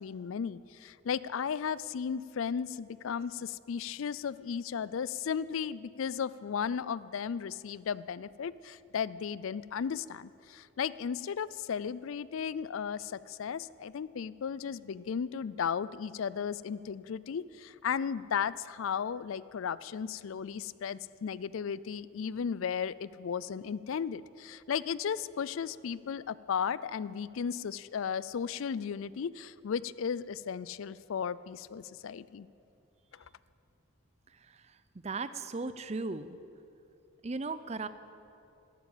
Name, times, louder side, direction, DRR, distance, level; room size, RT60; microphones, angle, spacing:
voice 1, 0.0-32.5 33.1-33.3, left 7 dB, 70° left, 19 dB, 0.4 m, -35 dB
voice 2, 34.3-34.8 35.0-36.4 37.2-37.9, right 3 dB, 30° right, 14 dB, 0.5 m, -37 dB
12.5 x 12.5 x 8.4 m, 2.7 s
head